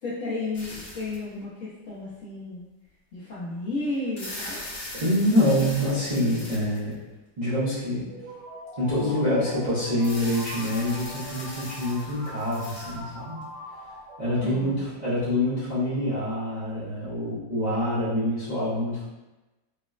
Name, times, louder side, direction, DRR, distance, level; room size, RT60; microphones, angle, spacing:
voice 1, 0.0-2.6 3.1-4.6 14.4-14.8, left 2 dB, 90° left, -8 dB, 0.6 m, -33 dB
sound 1, 0.5-1.3 2.1-2.2 3.9-7.1 10.0-13.4, left 1 dB, 50° left, 1.1 m, -40 dB
voice 2, 4.9-6.9 7.4-8.0 8.8-13.4 14.2-19.1, left 1 dB, 80° right, -13 dB, 0.4 m, -26 dB
sound 2, 8.1-14.9, equal, 55° right, 0.9 m, -42 dB
4.0 x 2.0 x 2.4 m, 1.1 s
omnidirectional pair, 2.1 m